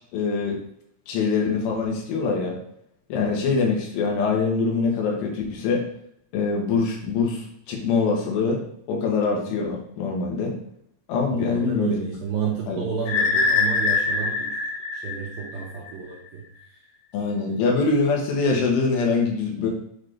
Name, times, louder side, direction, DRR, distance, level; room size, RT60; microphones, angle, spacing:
voice 1, 0.1-0.6 1.1-2.6 3.1-5.8 6.3-8.6 8.9-10.6 11.1-12.0 12.7-12.8 17.1-19.7, left 4 dB, 85° left, 0 dB, 3.8 m, -24 dB
voice 2, 11.3-14.5 14.9-16.4 17.5-17.6, right 7 dB, 75° right, -3 dB, 2.3 m, -31 dB
sound 1, 13.1-15.9, left 4 dB, 60° left, 3.0 m, -24 dB
8.3 x 4.3 x 3.3 m, 0.73 s
omnidirectional pair, 5.4 m